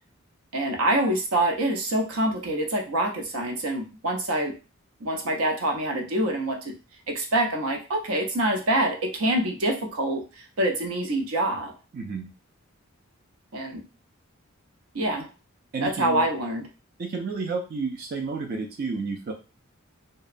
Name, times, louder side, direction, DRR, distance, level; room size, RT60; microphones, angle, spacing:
voice 1, 0.5-4.5 5.0-6.7 7.1-11.7 13.5-13.8 14.9-15.3 15.8-16.7, right 1 dB, 85° right, 3 dB, 0.6 m, -26 dB
voice 2, 11.9-12.3 15.7-16.3 17.0-19.3, right 4 dB, 45° right, 2 dB, 0.4 m, -31 dB
2.8 x 2.1 x 2.5 m, 0.32 s
head